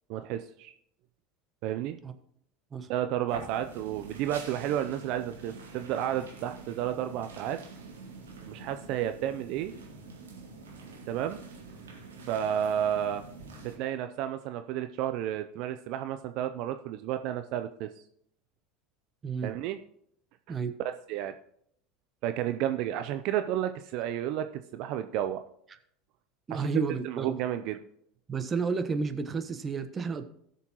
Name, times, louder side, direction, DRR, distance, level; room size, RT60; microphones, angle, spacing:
voice 1, 0.1-0.7 1.6-2.0 2.9-7.6 8.5-9.7 11.1-11.4 12.3-13.2 13.6-17.9 19.4-19.8 20.5-20.6 21.1-21.3 22.2-24.5 24.7-25.4 26.5-26.6 27.0-27.8, right 11 dB, 60° right, 9 dB, 0.6 m, -31 dB
sound 1, 3.3-13.8, right 3 dB, 85° right, 2.4 m, -46 dB
voice 2, 26.5-27.3 28.3-30.2, right 5 dB, 30° right, 9 dB, 1.1 m, -31 dB
18.0 x 6.9 x 3.0 m, 0.70 s
hypercardioid pair, 80°, 0 cm